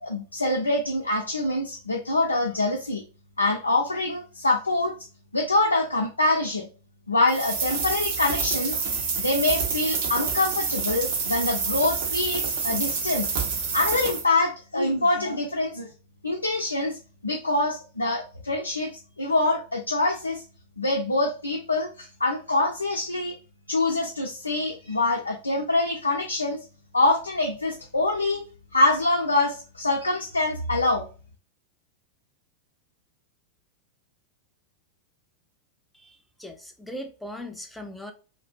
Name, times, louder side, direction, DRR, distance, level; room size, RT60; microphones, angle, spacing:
voice 1, 0.0-3.0 3.4-4.9 5.3-6.7 7.1-13.3 13.7-15.9 16.2-17.0 17.2-18.9 19.2-20.4 20.8-23.4 23.7-26.6 26.9-28.4 28.7-31.1, left 2 dB, 80° left, 0.3 m, -25 dB
sound 1, 7.3-14.2, right 5 dB, 50° right, 0.6 m, -28 dB
voice 2, 35.9-38.1, left 1 dB, 5° left, 0.4 m, -39 dB
2.5 x 2.1 x 2.4 m
figure-of-eight pair, 90°, 0 cm